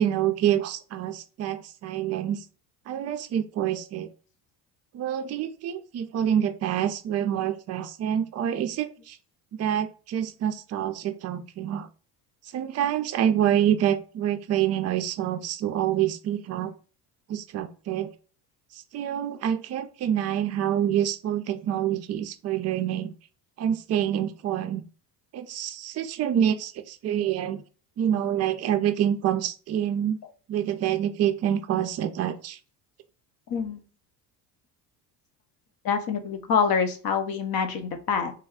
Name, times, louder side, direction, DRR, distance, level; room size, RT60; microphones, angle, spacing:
voice 1, 0.0-2.4 2.9-4.1 4.9-9.2 9.5-11.9 12.5-16.7 17.3-18.1 18.7-23.1 23.6-24.8 25.3-27.6 28.0-30.2 30.5-32.6, right 10 dB, 35° right, 9 dB, 0.4 m, -27 dB
voice 2, 33.5-33.8 35.8-38.3, left 6 dB, 45° left, 7 dB, 0.8 m, -26 dB
3.4 x 2.2 x 3.5 m, 0.38 s
hypercardioid pair, 75°, 50 cm